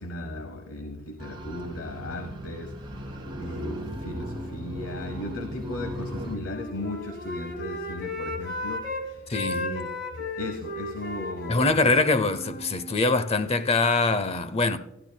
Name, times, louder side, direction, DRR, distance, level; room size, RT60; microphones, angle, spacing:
voice 1, 0.0-9.9 10.1-12.0, left 1 dB, 85° left, 1.0 m, -36 dB
sound 1, 1.2-6.4, right 1 dB, 25° right, 2.2 m, -36 dB
Wind instrument woodwind instrument, 6.3-9.0 9.3-12.9, left 2 dB, 55° left, 2.1 m, -35 dB
voice 2, 9.3-9.7 11.5-14.8, left 3 dB, 30° left, 0.6 m, -23 dB
22.0 x 12.0 x 2.2 m
head